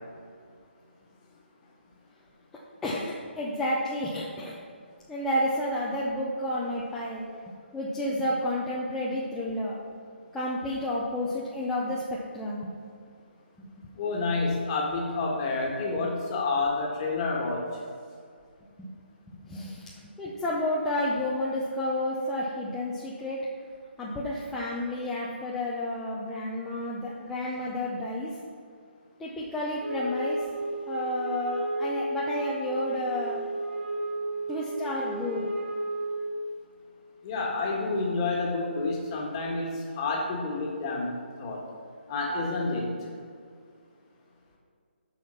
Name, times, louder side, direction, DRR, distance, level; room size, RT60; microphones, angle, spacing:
voice 1, 2.8-4.6 5.1-7.3 7.7-9.8 10.3-12.7 18.8-18.9 19.4-19.9 20.2-23.4 24.0-28.4 29.2-30.4 30.9-33.4 34.5-35.5, left 1 dB, 5° left, -7 dB, 0.5 m, -31 dB
voice 2, 13.9-17.6 37.2-41.1 41.4-41.6 42.1-42.9, left 3 dB, 25° left, -2 dB, 1.5 m, -29 dB
Wind instrument woodwind instrument, 29.8-36.6, right 1 dB, 65° right, 1.5 m, -33 dB
8.5 x 5.7 x 5.7 m, 2.2 s
hypercardioid pair, 165°, 6 cm